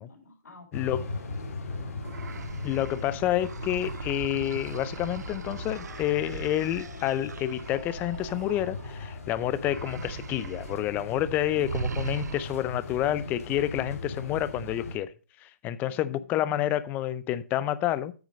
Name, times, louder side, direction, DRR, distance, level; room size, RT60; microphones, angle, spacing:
voice 1, 0.0-0.8 1.2-2.0 15.8-16.5, left 3 dB, 70° left, 4.0 m, -53 dB
sound 1, 0.7-15.0, left 3 dB, 55° left, 2.3 m, -39 dB
voice 2, 0.7-1.0 2.6-15.1 15.4-18.1, left 12 dB, 20° left, 0.5 m, -29 dB
sound 2, 2.0-9.2 9.6-10.8 11.1-11.3 11.6-12.8, right 6 dB, 75° right, 0.4 m, -39 dB
9.0 x 6.1 x 5.0 m
hypercardioid pair, 140°, 9 cm